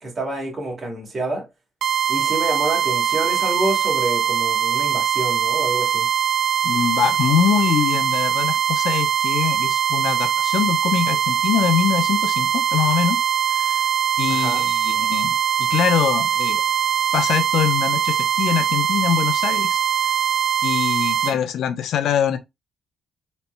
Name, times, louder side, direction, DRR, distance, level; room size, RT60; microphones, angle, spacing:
voice 1, 0.0-1.5 2.1-6.1 14.3-14.7, right 2 dB, 35° right, 2.2 m, -27 dB
sound 1, 1.8-21.3, right 9 dB, 65° right, 0.6 m, -21 dB
voice 2, 6.6-13.2 13.6-13.8 14.2-16.6 17.1-19.8 20.6-22.4, left 9 dB, 75° left, 0.6 m, -23 dB
4.2 x 4.2 x 2.2 m
cardioid pair, 90°, 0 cm